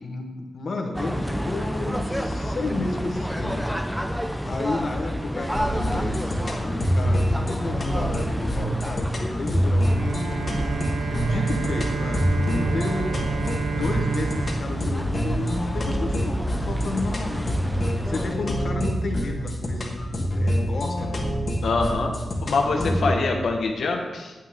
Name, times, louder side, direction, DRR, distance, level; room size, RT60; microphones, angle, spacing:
voice 1, 0.0-3.7 4.4-10.3 11.2-17.5 18.0-21.4 22.7-23.3, left 2 dB, 55° left, 3 dB, 1.2 m, -32 dB
sound 1, 0.9-18.3, equal, ahead, 0.5 m, -30 dB
sound 2, 5.5-23.1, equal, 40° left, 1.4 m, -26 dB
Bowed string instrument, 9.8-15.9, right 6 dB, 75° right, 0.6 m, -31 dB
voice 2, 21.6-22.1 22.4-24.3, left 3 dB, 80° left, 2 dB, 1.0 m, -24 dB
8.8 x 8.3 x 3.6 m, 1.2 s
wide cardioid pair, 140°, 0 cm